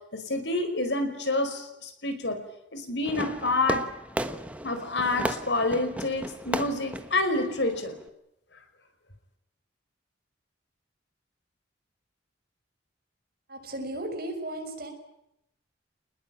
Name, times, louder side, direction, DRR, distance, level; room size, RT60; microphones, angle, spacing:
voice 1, 0.1-2.4 2.7-3.9 4.6-8.0, left 2 dB, 65° left, 8 dB, 4.9 m, -28 dB
Fireworks, 3.0-8.1, right 1 dB, 5° right, 1.3 m, -35 dB
voice 2, 13.5-14.9, right 1 dB, 55° right, 4 dB, 6.5 m, -35 dB
28.5 x 20.5 x 9.0 m, 0.82 s
head